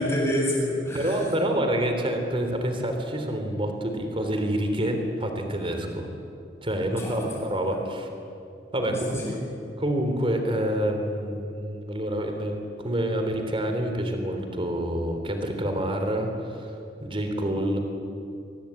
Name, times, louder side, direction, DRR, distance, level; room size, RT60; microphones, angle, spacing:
voice 1, 0.0-1.2 7.0-7.4 8.9-9.3, left 1 dB, 15° left, -3 dB, 7.9 m, -28 dB
voice 2, 0.9-6.1 6.6-8.1 8.7-8.9 9.8-17.8, right 1 dB, 30° right, 5 dB, 3.1 m, -27 dB
24.5 x 20.5 x 8.9 m, 2.6 s
head